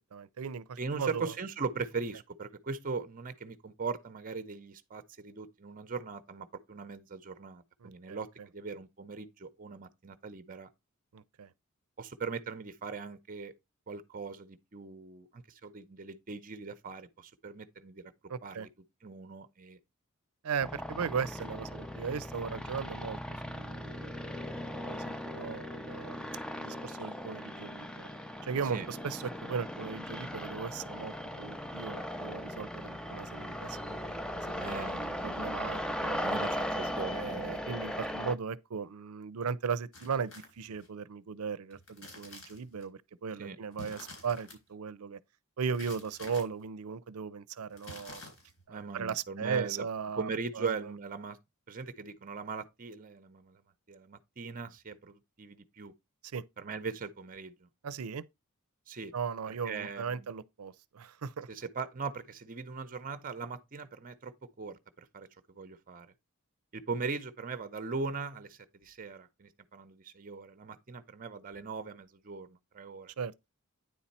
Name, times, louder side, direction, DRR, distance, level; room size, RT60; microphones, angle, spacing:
voice 1, 0.1-1.3 7.8-8.2 11.1-11.5 18.3-18.7 20.4-28.1 28.4-34.7 34.9-36.3 37.1-45.2 45.6-48.2 48.7-50.3 50.6-50.7 56.3-56.4 57.8-58.2 59.1-61.5 73.2-73.3, right 6 dB, 90° right, 0.5 m, -37 dB
voice 2, 0.8-10.7 12.0-13.5 13.9-18.1 18.4-18.7 19.0-19.8 28.7-28.9 34.6-35.3 36.2-37.8 43.4-43.6 48.7-49.9 50.2-51.4 51.7-53.6 53.9-55.9 56.6-57.7 58.9-59.1 59.6-60.3 61.5-66.1 66.7-73.1, right 4 dB, 40° right, 0.6 m, -40 dB
sound 1, 20.6-38.4, equal, 5° left, 0.4 m, -38 dB
sound 2, 39.9-40.9 41.7-42.8 43.7-44.6 45.7-46.4 47.7-48.6, left 2 dB, 70° left, 4.0 m, -49 dB
9.3 x 4.2 x 4.2 m
head